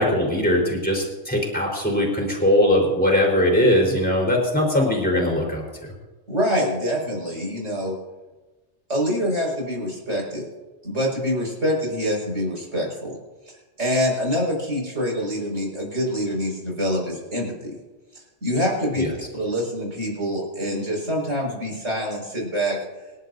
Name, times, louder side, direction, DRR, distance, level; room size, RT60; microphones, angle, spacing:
voice 1, 0.0-5.6 19.0-19.1, left 1 dB, 5° left, -2 dB, 4.2 m, -20 dB
voice 2, 6.3-7.9 8.9-10.4 10.8-13.2 13.8-17.7 18.1-19.0 19.3-22.8, equal, 75° right, -2 dB, 6.0 m, -25 dB
27.5 x 11.5 x 2.7 m, 1.2 s
omnidirectional pair, 1.3 m